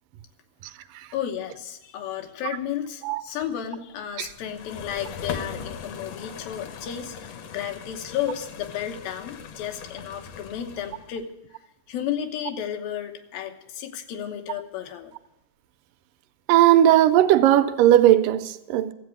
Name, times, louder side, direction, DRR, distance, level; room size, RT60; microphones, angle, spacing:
voice 1, 1.1-11.3 11.9-15.1, left 10 dB, 85° left, 2.9 m, -33 dB
sound 1, 4.2-11.2, left 6 dB, 65° left, 1.6 m, -39 dB
voice 2, 16.5-18.9, right 12 dB, 80° right, 2.1 m, -17 dB
13.5 x 8.0 x 8.2 m
omnidirectional pair, 4.0 m